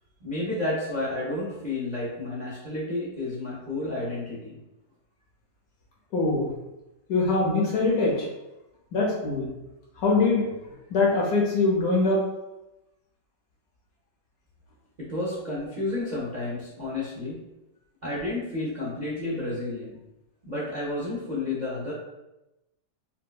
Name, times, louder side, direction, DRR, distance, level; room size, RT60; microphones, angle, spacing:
voice 1, 0.2-4.6 15.0-17.4 18.0-20.0 20.4-21.9, left 2 dB, 70° right, -7 dB, 0.4 m, -31 dB
voice 2, 6.1-6.5 7.1-8.3 8.9-9.5 10.0-10.5 10.9-12.2, left 3 dB, 65° left, -3 dB, 1.1 m, -23 dB
4.5 x 2.1 x 2.2 m, 0.97 s
omnidirectional pair, 1.9 m